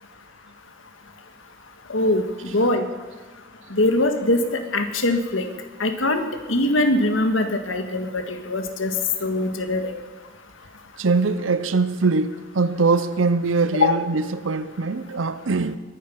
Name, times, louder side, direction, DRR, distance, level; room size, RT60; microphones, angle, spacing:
voice 1, 1.9-2.9 3.7-5.5 5.8-8.9 9.2-9.9 13.8-13.9, left 2 dB, 90° left, 1.7 m, -22 dB
voice 2, 11.0-15.8, right 3 dB, 85° right, 0.7 m, -22 dB
21.5 x 9.5 x 5.9 m
head